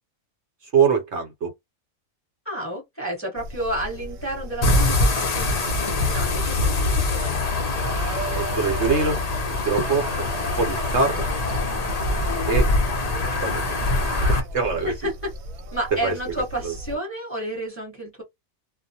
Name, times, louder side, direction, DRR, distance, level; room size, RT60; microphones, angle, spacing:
voice 1, 0.7-1.5 8.3-9.2 9.6-10.3 10.6-11.3 12.5-12.7 13.4-14.9 16.0-16.1 16.6-16.7, right 5 dB, 60° right, 0.9 m, -24 dB
voice 2, 2.4-7.4 14.8-15.3 15.7-18.2, right 1 dB, 10° left, 1.0 m, -31 dB
sound 1, 3.4-17.0, right 2 dB, 80° right, 1.0 m, -37 dB
sound 2, 4.6-14.4, left 2 dB, 50° left, 0.5 m, -23 dB
2.4 x 2.0 x 2.7 m
omnidirectional pair, 1.4 m